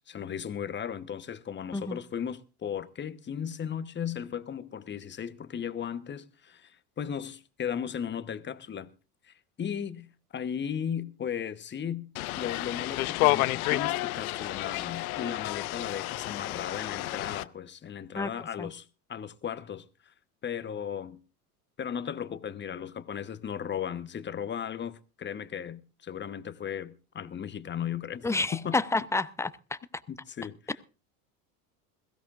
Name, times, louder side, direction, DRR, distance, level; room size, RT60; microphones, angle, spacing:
voice 1, 0.0-8.9 9.2-12.1 12.4-20.1 20.4-21.2 21.8-28.8 30.1-30.7, left 8 dB, 25° left, 1.1 m, -36 dB
sound 1, 12.2-17.4, left 19 dB, 70° left, 0.7 m, -30 dB
voice 2, 28.2-29.5, left 3 dB, 5° left, 0.7 m, -29 dB
21.5 x 16.0 x 2.5 m
hypercardioid pair, 85°, 45 cm